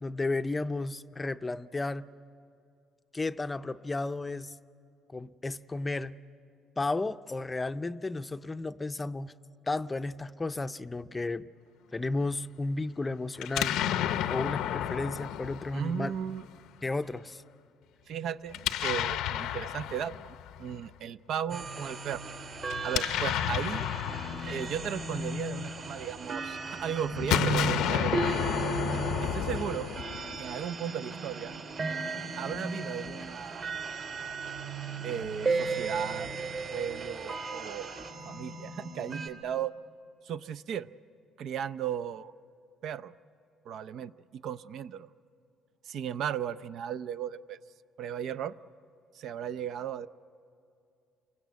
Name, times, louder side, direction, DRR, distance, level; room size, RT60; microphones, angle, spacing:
voice 1, 0.0-2.1 3.1-4.5 5.1-6.1 6.8-9.3 9.7-11.5 11.9-13.8 14.3-16.1 16.8-17.4, left 2 dB, 15° left, 11 dB, 0.6 m, -33 dB
Explosion, 13.4-16.4 18.5-20.7 22.6-26.1 27.1-30.5, left 11 dB, 85° left, 0.7 m, -32 dB
voice 2, 15.7-16.4 18.1-22.2 22.8-23.9 24.4-28.4 29.2-30.0 30.4-31.6 32.4-33.7 35.0-36.3 36.7-37.9 38.2-39.7 40.2-40.9 41.4-42.3 42.8-43.1 43.6-45.1 45.8-47.6 48.0-48.6 49.1-50.1, right 9 dB, 65° right, 14 dB, 0.6 m, -36 dB
sound 1, 21.5-39.3, right 4 dB, 45° right, 2.9 m, -36 dB
29.0 x 23.5 x 8.2 m, 2.5 s
cardioid pair, 120°, 0 cm